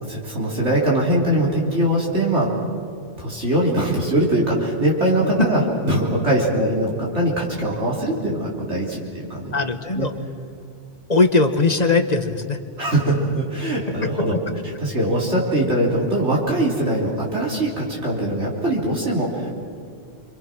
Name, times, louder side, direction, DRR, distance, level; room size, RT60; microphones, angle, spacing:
voice 1, 0.0-2.6 3.2-9.6 10.0-10.1 12.8-14.4 14.6-19.5, right 1 dB, 65° right, -4 dB, 3.9 m, -22 dB
voice 2, 9.5-10.1 11.1-12.6 14.0-14.3, left 3 dB, 35° left, 7 dB, 1.4 m, -19 dB
29.0 x 26.0 x 6.2 m, 2.4 s
omnidirectional pair, 1.3 m